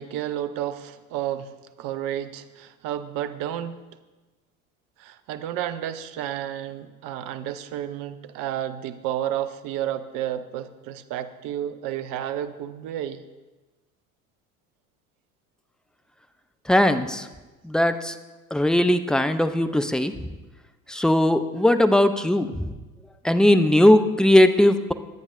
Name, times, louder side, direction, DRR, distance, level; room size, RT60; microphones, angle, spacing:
voice 1, 0.0-1.5 1.8-3.8 5.0-13.2, right 11 dB, 50° right, 10 dB, 0.8 m, -31 dB
voice 2, 16.7-17.3 17.6-18.1 18.5-20.1 20.9-22.7 23.2-24.9, left 1 dB, ahead, 9 dB, 0.5 m, -19 dB
22.5 x 8.8 x 2.5 m, 1.2 s
figure-of-eight pair, 65°, 43 cm